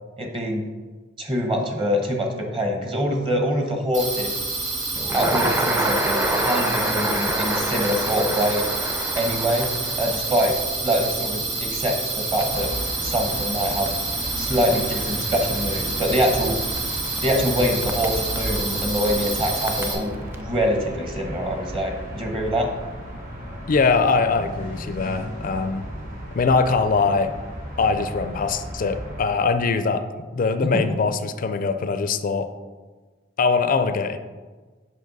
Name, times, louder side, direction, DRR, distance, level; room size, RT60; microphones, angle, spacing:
voice 1, 0.2-0.6 1.2-4.3 5.1-8.7 9.2-9.7 9.9-10.6 10.8-12.7 13.0-13.9 14.4-16.6 17.2-22.7 30.6-30.8, equal, 30° right, 3 dB, 1.0 m, -24 dB
sound 1, 3.9-19.9, right 3 dB, 75° right, 2.4 m, -28 dB
Crackle, 5.0-20.4, right 1 dB, 10° right, 0.5 m, -30 dB
sound 2, 12.5-29.2, equal, 45° right, 2.1 m, -35 dB
voice 2, 23.7-25.8 26.3-27.3 27.8-30.0 30.3-32.5 33.4-34.2, left 4 dB, 45° left, 10 dB, 0.4 m, -22 dB
7.5 x 5.4 x 4.0 m, 1.3 s
head